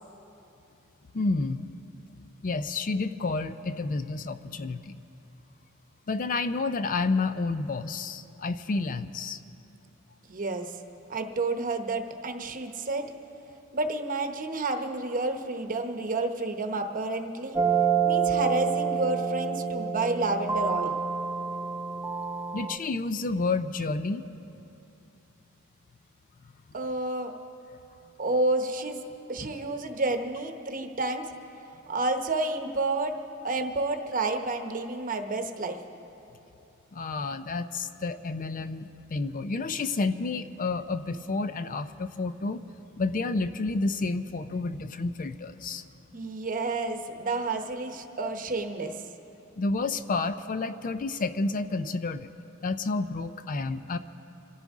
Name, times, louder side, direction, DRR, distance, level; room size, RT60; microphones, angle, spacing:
voice 1, 1.1-1.7 2.4-5.0 6.1-9.4 22.5-24.3 29.4-29.5 36.9-42.6 43.0-45.8 49.6-52.3 52.6-54.0, left 3 dB, 40° left, 11 dB, 0.4 m, -30 dB
voice 2, 10.3-10.8 11.1-13.1 13.7-17.6 18.0-21.0 26.7-27.3 28.2-29.0 29.3-31.2 31.9-33.2 33.4-35.8 46.1-49.0, right 2 dB, 40° right, 6 dB, 1.0 m, -30 dB
sound 1, 17.6-22.8, right 6 dB, 10° right, 0.6 m, -27 dB
26.0 x 14.0 x 3.6 m, 2.9 s
head